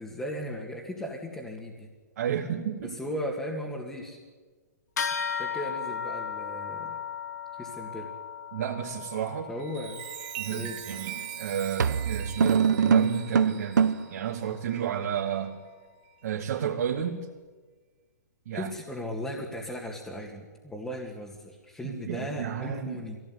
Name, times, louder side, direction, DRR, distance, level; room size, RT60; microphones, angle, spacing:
voice 1, 0.0-1.9 2.8-4.2 5.3-7.0 7.5-8.1 9.5-10.0 10.5-10.8 18.5-23.2, equal, 5° left, -2 dB, 2.1 m, -37 dB
voice 2, 2.2-3.0 5.1-5.2 8.5-9.5 10.4-15.6 16.2-17.3 18.5-18.7 21.8-23.0, right 9 dB, 60° right, 0 dB, 2.3 m, -32 dB
sound 1, 5.0-14.8, left 7 dB, 75° left, 2.0 m, -38 dB
Chime, 9.5-15.5 16.0-16.3, right 13 dB, 35° right, 2.1 m, -42 dB
sound 2, 10.9-11.1 11.8-14.2, right 6 dB, 80° right, 1.0 m, -23 dB
22.0 x 17.0 x 9.8 m, 1.4 s
hypercardioid pair, 150°, 9 cm